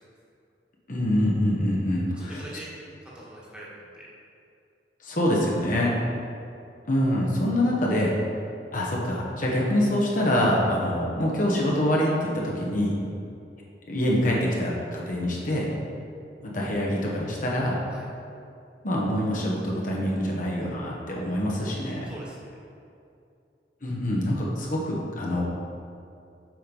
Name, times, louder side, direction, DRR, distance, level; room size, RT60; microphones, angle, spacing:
voice 1, 0.9-2.4 5.0-5.9 6.9-8.1 8.7-12.9 13.9-15.7 16.5-17.8 18.8-22.0 23.8-25.4, left 1 dB, 50° left, -3 dB, 1.3 m, -25 dB
voice 2, 2.1-2.7 3.0-4.1 5.9-6.0 17.9-18.1 21.5-21.7 22.0-22.6, right 1 dB, 5° right, -7 dB, 1.7 m, -43 dB
7.6 x 5.8 x 5.5 m, 2.5 s
head